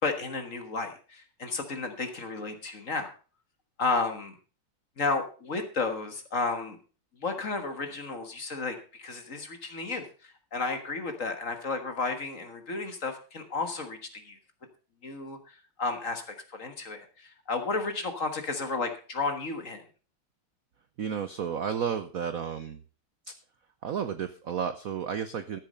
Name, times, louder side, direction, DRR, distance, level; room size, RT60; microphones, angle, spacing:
voice 1, 0.0-3.1 3.8-4.4 5.0-6.8 7.2-14.4 15.0-19.8, left 3 dB, 40° left, 6 dB, 1.7 m, -32 dB
voice 2, 21.0-22.8 23.3-23.4 23.8-25.6, right 7 dB, 65° right, 10 dB, 0.8 m, -32 dB
13.5 x 7.3 x 5.3 m, 0.37 s
omnidirectional pair, 2.4 m